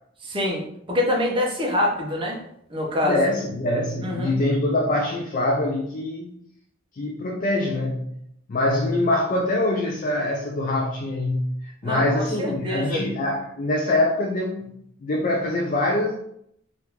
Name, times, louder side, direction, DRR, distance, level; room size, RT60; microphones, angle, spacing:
voice 1, 0.2-2.4 2.7-3.2 4.0-4.4 11.8-13.0, left 1 dB, 25° right, 0 dB, 0.6 m, -25 dB
voice 2, 3.0-6.3 6.9-8.1 8.5-14.7 15.0-16.1, left 1 dB, 40° left, -1 dB, 0.4 m, -24 dB
3.4 x 2.5 x 2.9 m, 0.72 s
head